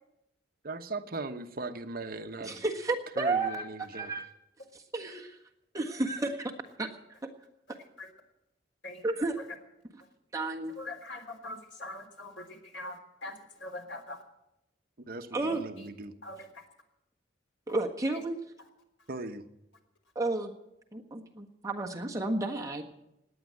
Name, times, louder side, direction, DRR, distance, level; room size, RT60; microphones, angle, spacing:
voice 1, 0.6-2.6 3.2-4.1 15.1-16.1 19.1-19.5, right 3 dB, 55° right, 7 dB, 1.0 m, -39 dB
voice 2, 2.4-3.6 3.9-4.3 4.7-5.4 5.7-6.5 6.8-7.3 7.7-7.8 9.0-9.4 10.3-10.8 15.3-15.6 17.7-18.4 20.1-20.5 20.9-22.8, right 2 dB, 20° right, 1 dB, 1.5 m, -32 dB
voice 3, 10.8-14.2 15.5-15.9 16.2-16.6, left 2 dB, 80° left, 4 dB, 3.4 m, -43 dB
18.0 x 9.7 x 7.7 m, 0.87 s
head